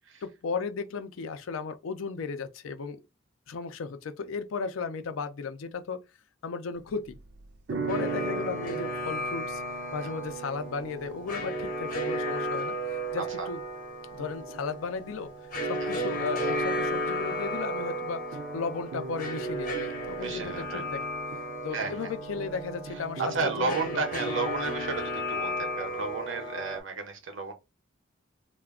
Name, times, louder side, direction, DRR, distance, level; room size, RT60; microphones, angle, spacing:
voice 1, 0.2-3.0 3.5-6.1 6.4-7.2 7.7-9.6 9.9-13.6 14.1-15.3 15.6-18.2 18.5-21.0 21.6-24.0, left 5 dB, 90° left, 0.4 m, -35 dB
sound 1, 6.8-18.0 18.3-24.7, right 4 dB, 55° right, 0.3 m, -42 dB
sound 2, 7.9-26.8, equal, 45° left, 0.8 m, -34 dB
voice 2, 13.2-13.5 15.8-15.9 20.2-20.8 21.7-22.1 23.2-27.5, right 4 dB, 75° right, 0.8 m, -32 dB
2.3 x 2.1 x 3.5 m
head